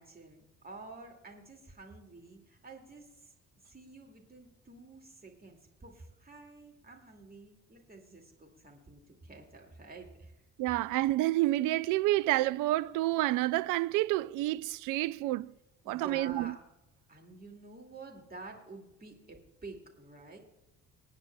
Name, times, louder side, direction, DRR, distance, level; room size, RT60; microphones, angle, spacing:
voice 1, 0.0-3.3 3.6-10.4 15.8-16.6 17.1-20.4, right 3 dB, 20° right, 2.3 m, -50 dB
voice 2, 10.6-15.5 15.9-16.5, right 16 dB, 50° right, 0.5 m, -29 dB
26.0 x 9.5 x 2.3 m
figure-of-eight pair, 45°, 41 cm